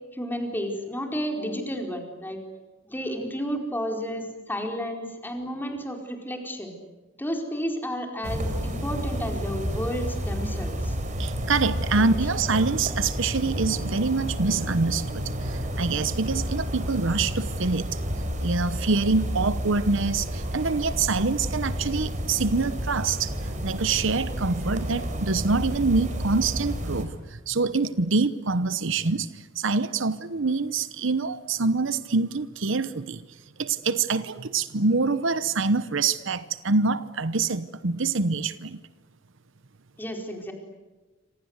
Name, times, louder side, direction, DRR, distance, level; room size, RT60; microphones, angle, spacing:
voice 1, 0.1-2.4 2.8-6.7 7.2-11.0 11.9-12.1 40.0-40.5, equal, 10° left, 3 dB, 4.4 m, -32 dB
sound 1, 8.2-27.1, equal, 35° right, 4.4 m, -30 dB
voice 2, 11.2-18.0 18.4-33.2 33.6-38.8, right 4 dB, 65° right, 14 dB, 0.9 m, -25 dB
28.0 x 26.5 x 8.1 m, 1.2 s
head